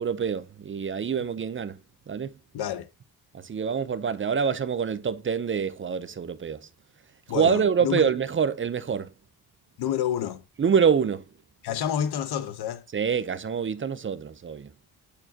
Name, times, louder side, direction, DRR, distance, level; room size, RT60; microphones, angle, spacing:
voice 1, 0.0-1.8 2.1-2.4 3.3-6.7 7.3-9.1 10.6-11.2 12.9-14.7, right 6 dB, 30° right, 0.7 m, -26 dB
voice 2, 2.5-2.9 7.3-8.1 9.8-10.4 11.6-12.8, left 9 dB, 80° left, 1.1 m, -29 dB
8.6 x 6.6 x 2.8 m
cardioid pair, 125°, 38 cm